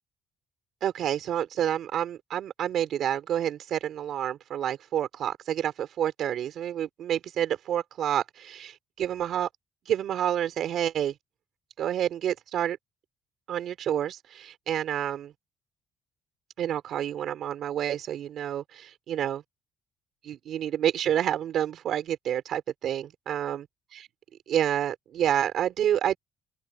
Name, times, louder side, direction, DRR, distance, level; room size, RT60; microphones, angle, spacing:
voice 1, 0.8-9.5 9.9-11.1 11.8-12.8 13.5-15.3 16.6-19.4 20.2-23.6 24.5-26.2, right 10 dB, 55° right, 3.6 m, -29 dB
open air
cardioid pair, 170°, 0 cm